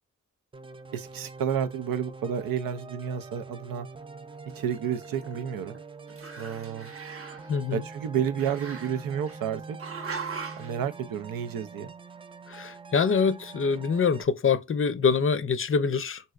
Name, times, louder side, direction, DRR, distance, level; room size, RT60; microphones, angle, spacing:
sound 1, 0.5-14.2, right 4 dB, 15° right, 0.3 m, -44 dB
voice 1, 0.9-3.9 4.6-5.8 6.4-6.9 7.7-9.8 10.6-11.9, right 8 dB, 90° right, 0.5 m, -31 dB
Growling, 4.6-5.8 6.1-7.5 8.4-9.4 9.8-10.7, right 5 dB, 45° right, 0.8 m, -40 dB
voice 2, 7.5-7.8 12.5-16.3, left 5 dB, 40° left, 0.5 m, -25 dB
3.1 x 2.6 x 2.4 m
cardioid pair, 45°, 33 cm